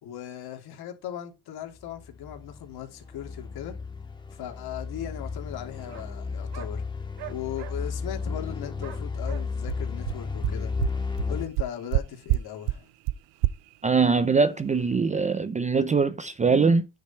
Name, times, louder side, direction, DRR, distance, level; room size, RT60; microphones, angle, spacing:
voice 1, 0.0-3.7 4.3-6.8 7.3-10.7 11.3-12.9, left 11 dB, 55° left, 2.9 m, -38 dB
sound 1, 1.8-11.4, left 4 dB, 10° left, 1.6 m, -33 dB
sound 2, 3.0-3.1 4.0-4.1 4.4-4.5 4.7-4.8 5.9-6.1 6.5-6.7 7.2-7.8 8.8-9.4, right 14 dB, 65° right, 1.9 m, -42 dB
sound 3, 9.7-9.8 10.1-10.2 10.4-10.5 10.8-10.9 11.2-11.3 11.5-12.0 12.3-12.4 12.7-12.8 13.1-13.2 13.4-13.5, right 17 dB, 85° right, 0.6 m, -24 dB
voice 2, 13.8-16.9, right 4 dB, 15° right, 0.5 m, -22 dB
9.5 x 6.7 x 4.4 m
cardioid pair, 135°, 44 cm